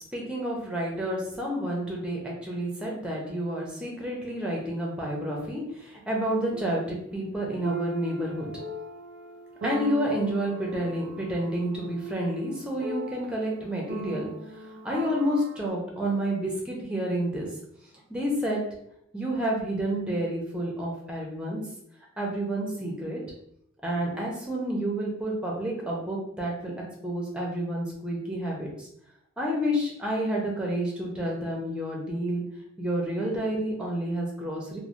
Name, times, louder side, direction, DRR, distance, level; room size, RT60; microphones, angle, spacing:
voice 1, 0.1-8.5 9.6-14.3 14.8-17.5 18.1-18.6 19.1-21.6 22.2-23.2 23.8-26.7 27.0-28.9 29.4-32.4 32.8-34.8, right 1 dB, 5° right, -2 dB, 0.5 m, -29 dB
sound 1, 5.4-5.5 6.5-6.8 7.6-15.7, right 1 dB, 55° right, 0.4 m, -38 dB
3.0 x 2.0 x 2.5 m, 0.73 s
head